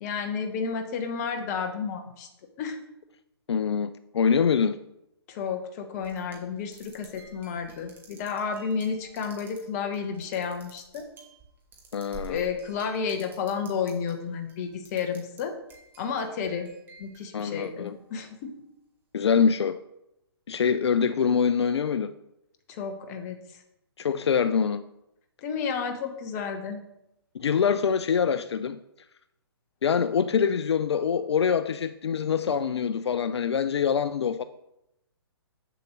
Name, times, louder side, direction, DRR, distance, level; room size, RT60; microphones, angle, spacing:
voice 1, 0.0-2.3 2.6-2.8 5.3-11.1 12.3-15.5 16.0-16.7 17.0-18.6 22.7-23.4 25.4-26.8, left 6 dB, 35° left, 1.1 m, -31 dB
voice 2, 3.5-4.8 11.9-12.4 17.3-18.0 19.1-19.8 20.5-22.1 24.0-24.8 27.3-28.8 29.8-34.4, left 6 dB, 75° left, 0.4 m, -24 dB
sound 1, 6.0-14.1 14.5-15.4 15.7-18.1, right 3 dB, 15° right, 1.5 m, -50 dB
7.9 x 6.8 x 3.1 m
hypercardioid pair, 135°, 14 cm